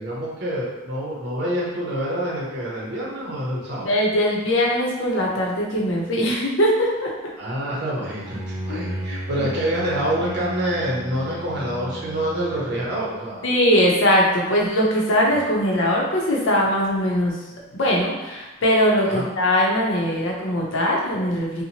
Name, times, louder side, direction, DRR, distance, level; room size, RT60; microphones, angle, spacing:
voice 1, 0.0-3.9 7.4-13.5 15.3-15.4 19.0-19.2, right 1 dB, 55° right, -5 dB, 0.7 m, -27 dB
voice 2, 3.8-7.1 8.7-8.8 13.4-17.4 17.7-21.6, equal, 75° left, -3 dB, 0.6 m, -21 dB
Bowed string instrument, 8.2-13.2, equal, 20° right, 0.4 m, -34 dB
2.8 x 2.1 x 2.8 m, 1.1 s
head